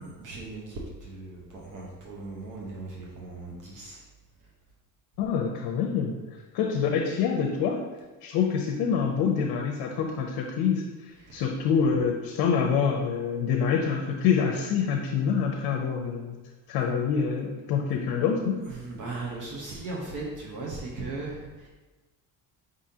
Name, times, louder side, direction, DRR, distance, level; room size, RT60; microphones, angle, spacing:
voice 1, 0.0-4.0 4.4-4.5 11.2-11.4 18.6-21.7, right 3 dB, 55° right, -3 dB, 0.9 m, -38 dB
voice 2, 5.2-6.2 6.5-7.8 8.2-16.4 16.7-18.6, left 6 dB, 90° left, 1 dB, 0.6 m, -26 dB
5.1 x 3.7 x 2.7 m, 1.2 s
cardioid pair, 125°, 37 cm